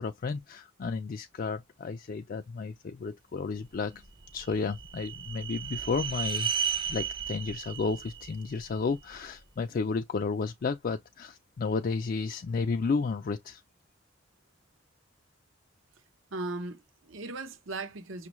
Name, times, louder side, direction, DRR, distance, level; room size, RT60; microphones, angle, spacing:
voice 1, 0.0-4.0 4.3-6.5 6.9-13.6, left 4 dB, 45° left, 0.4 m, -32 dB
sound 1, 4.0-9.2, right 7 dB, 25° right, 0.5 m, -35 dB
voice 2, 16.3-18.3, right 2 dB, 80° right, 0.9 m, -37 dB
6.1 x 2.3 x 3.0 m
head